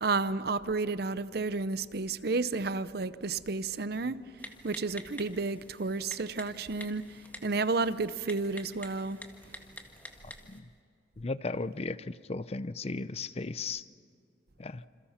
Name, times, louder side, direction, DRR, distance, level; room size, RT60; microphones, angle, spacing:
voice 1, 0.0-4.2 4.6-9.2, right 3 dB, 55° right, 0.7 m, -31 dB
Typing, 4.4-10.6, left 1 dB, 10° left, 1.7 m, -48 dB
voice 2, 11.2-13.8 14.6-14.8, left 3 dB, 35° left, 0.5 m, -35 dB
27.5 x 27.5 x 5.8 m
head